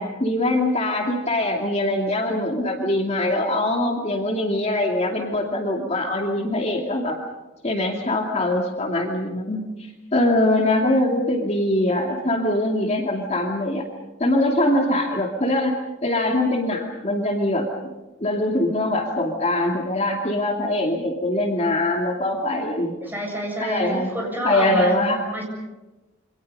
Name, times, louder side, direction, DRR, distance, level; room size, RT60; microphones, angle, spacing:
voice 1, 0.0-7.2 7.6-13.8 14.2-15.7 16.0-17.7 18.2-22.9 23.6-24.1 24.4-25.2, left 1 dB, 35° left, 1 dB, 2.6 m, -22 dB
voice 2, 23.0-25.0 25.3-25.4, right 1 dB, 10° right, 0 dB, 7.3 m, -28 dB
28.0 x 26.0 x 5.5 m, 1.1 s
head